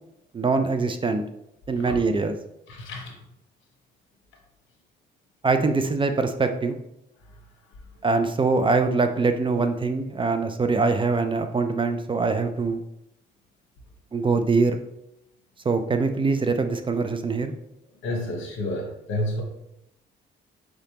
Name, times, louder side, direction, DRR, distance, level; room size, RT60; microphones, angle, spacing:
voice 1, 0.3-1.2 1.7-2.3 5.4-6.8 8.0-12.8 14.1-14.8 15.7-17.5, right 4 dB, 25° right, 8 dB, 0.4 m, -23 dB
voice 2, 2.7-3.2 18.0-19.4, left 1 dB, 80° left, 2 dB, 1.1 m, -30 dB
4.8 x 3.3 x 2.9 m, 0.82 s
cardioid pair, 90°, 20 cm